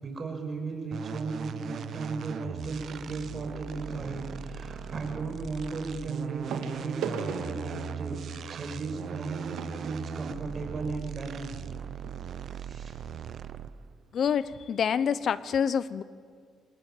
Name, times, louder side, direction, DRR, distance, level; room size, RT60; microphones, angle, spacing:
voice 1, 0.0-8.2 8.5-11.5 12.5-12.9, right 3 dB, 40° right, 4 dB, 5.9 m, -36 dB
sound 1, 0.9-13.9, right 8 dB, 60° right, 0.9 m, -39 dB
sound 2, 6.5-10.9 11.7-11.8 12.0-12.2 12.7-12.8, right 6 dB, 90° right, 3.0 m, -40 dB
voice 2, 14.1-16.0, left 7 dB, 60° left, 17 dB, 0.8 m, -27 dB
27.5 x 19.5 x 8.9 m, 2.1 s
cardioid pair, 90°, 0 cm